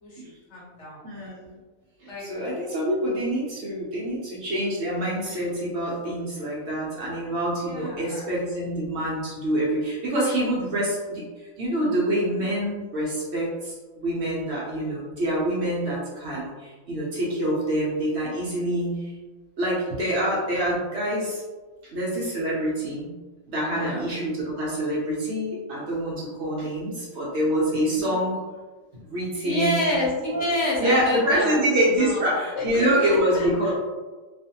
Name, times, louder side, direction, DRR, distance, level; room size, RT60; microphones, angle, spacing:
voice 1, 0.0-1.0 2.1-2.3 7.6-8.2 23.7-24.0 27.7-28.1 29.4-31.6 32.0-32.2 32.5-33.7, left 1 dB, 60° left, -6 dB, 1.1 m, -29 dB
voice 2, 1.0-1.5 2.0-19.1 19.6-21.4 21.8-23.1 23.5-28.4 29.0-29.9 30.8-33.7, right 1 dB, 60° right, -5 dB, 0.8 m, -26 dB
2.4 x 2.4 x 2.7 m, 1.3 s
omnidirectional pair, 1.4 m